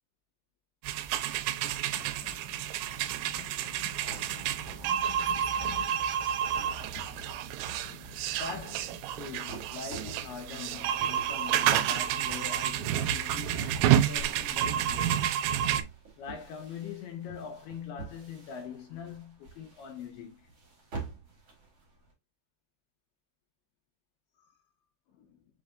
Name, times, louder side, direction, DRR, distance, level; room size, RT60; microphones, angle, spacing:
sound 1, 0.8-15.8, right 10 dB, 85° right, 3.0 m, -30 dB
sound 2, 1.5-9.8, left 8 dB, 60° left, 3.1 m, -50 dB
sound 3, 2.9-22.1, right 3 dB, 50° right, 1.5 m, -47 dB
voice 1, 8.3-15.3 16.2-20.5 24.4-24.5 25.1-25.4, left 7 dB, 80° left, 2.4 m, -43 dB
6.6 x 3.2 x 2.4 m
omnidirectional pair, 5.4 m